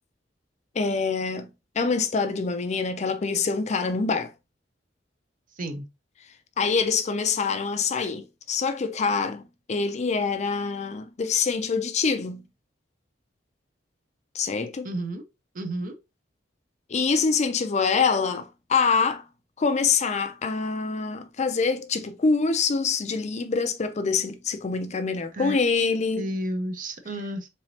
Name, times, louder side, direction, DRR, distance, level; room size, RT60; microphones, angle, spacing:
voice 1, 0.8-1.5 1.8-4.3 6.6-12.4 14.3-14.9 16.9-19.2 19.6-26.3, left 5 dB, 40° left, 0.5 m, -25 dB
voice 2, 14.8-15.2 15.5-15.9 25.3-25.6 25.9-27.5, right 1 dB, 45° right, 0.7 m, -32 dB
3.8 x 3.2 x 2.7 m
head